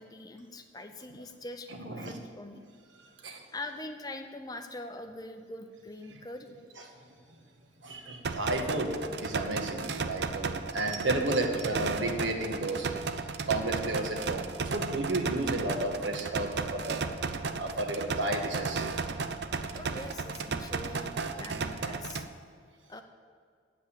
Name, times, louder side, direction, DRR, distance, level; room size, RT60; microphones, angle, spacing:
voice 1, 0.0-2.6 3.5-6.6 19.7-22.3 22.9-23.0, left 2 dB, 20° left, 7 dB, 0.6 m, -43 dB
voice 2, 1.7-2.2 3.2-3.4 7.8-14.5 14.7-17.1 17.5-18.8, right 2 dB, 75° right, 3 dB, 1.5 m, -32 dB
sound 1, 8.2-22.2, right 4 dB, 60° right, 0.6 m, -34 dB
8.5 x 8.0 x 8.5 m, 2.1 s
head